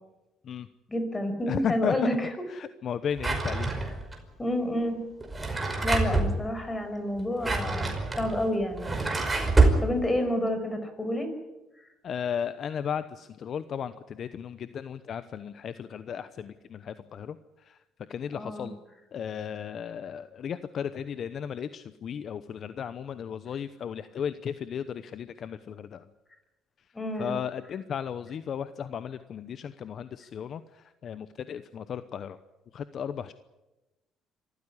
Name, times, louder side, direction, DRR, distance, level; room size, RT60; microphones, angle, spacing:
voice 1, 0.9-2.3 3.8-3.9 4.4-5.0 5.8-8.9 9.8-11.3 18.3-18.7 26.9-27.3, left 1 dB, 20° left, 8 dB, 5.7 m, -29 dB
voice 2, 1.5-1.9 2.5-3.7 12.0-17.4 17.7-17.8 18.1-18.8 19.1-26.0 27.2-32.4 32.7-33.3, left 8 dB, 50° left, 12 dB, 0.9 m, -35 dB
Drawer open or close, 3.2-4.2 5.2-6.3 7.2-9.8, right 3 dB, 15° right, 5.3 m, -25 dB
25.5 x 15.0 x 9.9 m, 1.0 s
cardioid pair, 100°, 0 cm